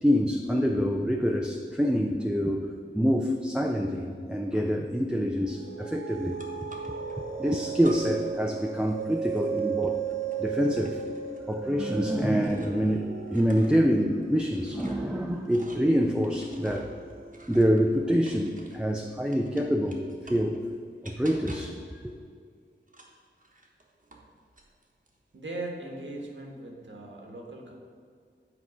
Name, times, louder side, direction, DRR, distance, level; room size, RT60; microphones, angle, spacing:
voice 1, 0.0-6.4 7.4-10.0 10.4-11.0 11.5-16.9 17.5-20.6 21.0-22.1, equal, 5° right, 1 dB, 0.5 m, -26 dB
sound 1, 5.4-18.2, right 6 dB, 90° right, 0.6 m, -36 dB
sound 2, 6.4-7.2 7.8-8.4 8.6-12.9 13.2-18.9 19.3-20.6 21.0-21.9 22.9-24.3 24.6-25.2, right 2 dB, 40° right, 1.1 m, -49 dB
voice 2, 25.3-27.7, right 2 dB, 70° right, -1 dB, 1.3 m, -39 dB
8.3 x 4.6 x 5.0 m, 2.2 s
wide cardioid pair, 70°, 20 cm